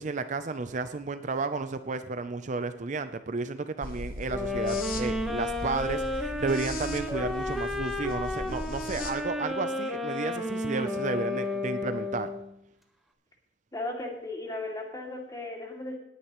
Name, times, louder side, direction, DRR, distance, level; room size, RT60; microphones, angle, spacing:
voice 1, 0.0-12.3, right 3 dB, 45° right, 10 dB, 0.5 m, -32 dB
sound 1, 3.8-9.1, left 1 dB, 50° left, 1.4 m, -38 dB
sound 2, 4.3-12.5, left 2 dB, ahead, 1.2 m, -32 dB
voice 2, 13.7-16.0, left 2 dB, 20° left, 0 dB, 2.5 m, -36 dB
18.5 x 9.8 x 3.1 m, 0.83 s
head